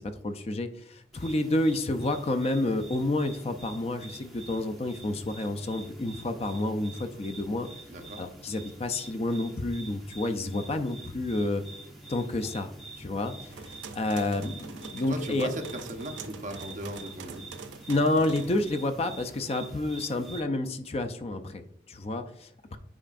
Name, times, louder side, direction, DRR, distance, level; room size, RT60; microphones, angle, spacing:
voice 1, 0.0-7.7 8.2-11.6 12.1-12.7 13.0-15.5 17.9-22.8, left 2 dB, 35° left, 8 dB, 0.4 m, -29 dB
sound 1, 1.1-20.4, right 2 dB, ahead, 1.3 m, -47 dB
voice 2, 7.9-8.2 15.1-17.5, right 1 dB, 40° right, 3 dB, 0.9 m, -37 dB
sound 2, 13.5-18.7, right 5 dB, 85° right, 0.5 m, -44 dB
8.7 x 4.9 x 2.5 m, 0.66 s
head